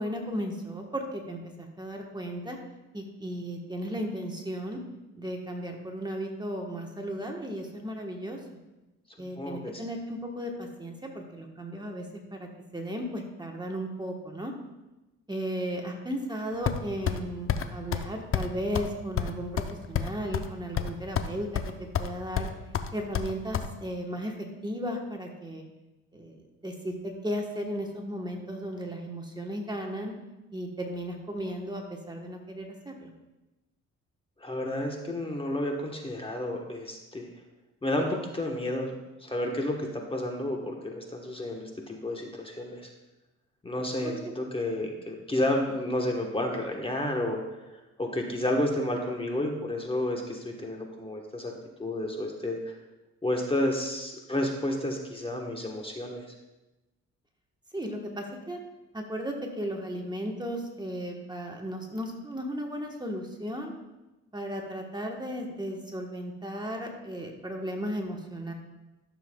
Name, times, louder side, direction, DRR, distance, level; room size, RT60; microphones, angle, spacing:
voice 1, 0.0-2.6 2.9-4.8 5.2-8.4 9.2-12.1 12.3-14.5 15.3-21.6 22.0-22.5 22.9-24.3 24.6-25.6 26.1-30.2 30.5-33.1 44.0-44.3 57.7-58.6 58.9-63.7 64.3-68.5, equal, 15° right, 1 dB, 1.2 m, -35 dB
voice 2, 9.4-9.8 34.4-37.3 37.8-38.9 39.2-42.9 43.6-47.4 48.0-51.5 51.8-52.7 53.2-56.2, left 1 dB, 20° left, 1 dB, 1.2 m, -31 dB
sound 1, 16.7-17.2 17.5-17.6 17.9-18.1 18.3-18.5 18.7-18.9 19.2-20.5 20.8-21.3 21.5-22.1 22.4-23.7, left 8 dB, 45° left, 0.6 m, -28 dB
13.5 x 6.9 x 2.3 m, 1.0 s
cardioid pair, 90°, 30 cm